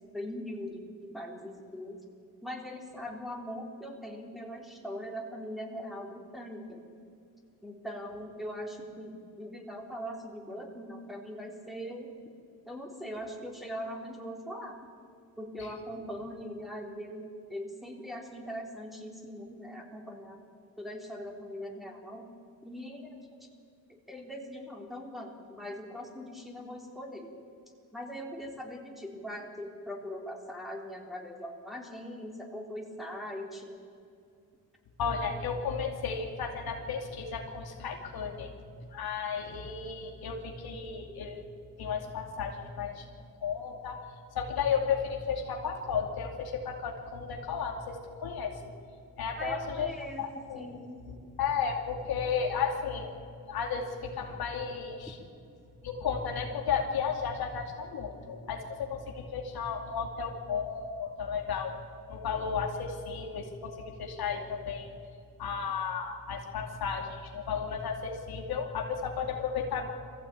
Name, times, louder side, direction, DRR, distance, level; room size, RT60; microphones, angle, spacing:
voice 1, 0.1-0.9 1.1-2.0 2.4-6.8 7.6-12.1 12.7-14.7 15.4-20.4 20.8-22.3 22.6-23.1 24.1-27.3 27.9-33.7 49.4-50.3 50.5-51.0, equal, ahead, -1 dB, 3.9 m, -41 dB
voice 2, 35.0-38.5 38.9-41.4 41.8-43.0 43.4-44.0 44.3-48.0 48.2-48.6 49.2-49.9 50.2-53.2 53.5-55.2 55.8-61.7 62.1-64.9 65.4-69.9, left 6 dB, 85° left, 1 dB, 2.7 m, -33 dB
22.0 x 15.5 x 8.8 m, 2.4 s
cardioid pair, 75°, 36 cm